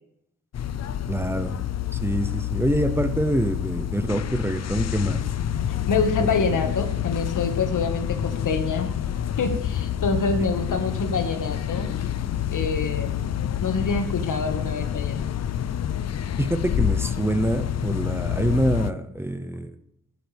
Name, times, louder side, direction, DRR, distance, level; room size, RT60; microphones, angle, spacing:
sound 1, 0.5-18.9, left 10 dB, 55° left, 0.6 m, -28 dB
voice 1, 1.1-1.6 1.9-5.2 16.4-19.7, right 1 dB, 10° right, 9 dB, 0.8 m, -25 dB
voice 2, 5.9-8.9 9.4-11.9 12.5-13.3 13.6-15.3, left 4 dB, 80° left, 6 dB, 1.8 m, -26 dB
16.0 x 12.5 x 3.5 m, 0.77 s
wide cardioid pair, 130°, 31 cm